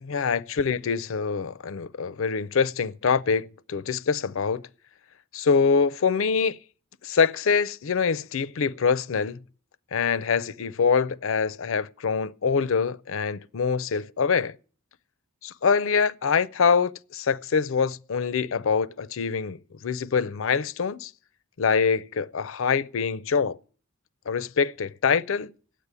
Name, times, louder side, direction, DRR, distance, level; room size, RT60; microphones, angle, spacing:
voice 1, 0.0-4.6 5.3-6.6 7.0-9.4 9.9-14.5 15.4-21.1 21.6-23.6 24.3-25.5, left 5 dB, 70° left, 0.5 m, -24 dB
9.4 x 8.3 x 9.6 m
head